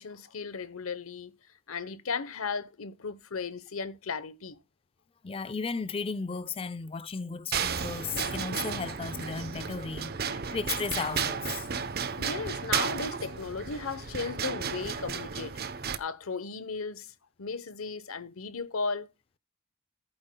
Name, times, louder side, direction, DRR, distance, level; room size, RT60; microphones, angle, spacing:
voice 1, 0.0-1.3 1.7-4.6 12.2-15.6 16.0-19.1, left 4 dB, 75° left, 0.9 m, -36 dB
voice 2, 5.2-11.7, left 5 dB, 25° left, 0.4 m, -35 dB
sound 1, 7.5-16.0, right 6 dB, 45° right, 0.8 m, -33 dB
15.0 x 8.8 x 2.2 m
head